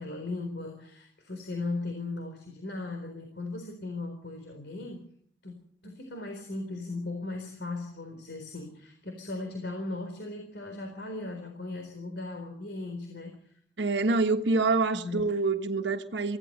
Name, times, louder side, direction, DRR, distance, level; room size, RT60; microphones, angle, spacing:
voice 1, 0.0-5.1 5.4-5.5 5.8-13.5 14.9-15.3, left 2 dB, 65° left, 4.1 m, -37 dB
voice 2, 13.8-16.4, right 3 dB, 70° right, 1.4 m, -26 dB
25.5 x 16.5 x 6.7 m
head